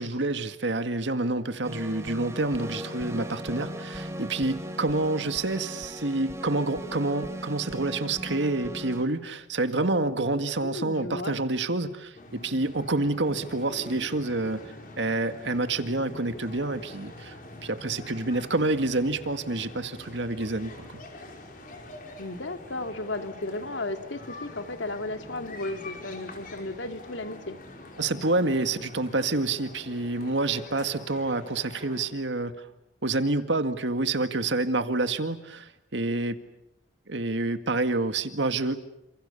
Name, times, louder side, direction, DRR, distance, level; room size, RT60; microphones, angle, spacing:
voice 1, 0.0-14.6 15.0-17.4 17.6-21.0 28.0-32.5 33.0-36.4 37.1-38.8, right 2 dB, 75° right, 9 dB, 2.0 m, -28 dB
sound 1, 1.6-9.0, equal, 15° right, 2.9 m, -38 dB
voice 2, 10.6-11.4 22.2-27.6, left 2 dB, 80° left, 7 dB, 2.3 m, -34 dB
sound 2, 12.1-32.1, left 1 dB, 50° left, 5.2 m, -45 dB
29.5 x 27.5 x 7.1 m, 0.84 s
head